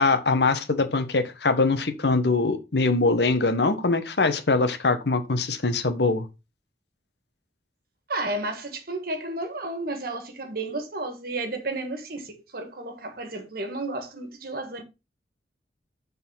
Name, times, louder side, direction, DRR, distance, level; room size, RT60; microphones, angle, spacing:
voice 1, 0.0-6.2, left 3 dB, 65° left, 1.1 m, -23 dB
voice 2, 8.1-14.8, right 2 dB, 55° right, 1.6 m, -32 dB
6.8 x 4.1 x 5.6 m
head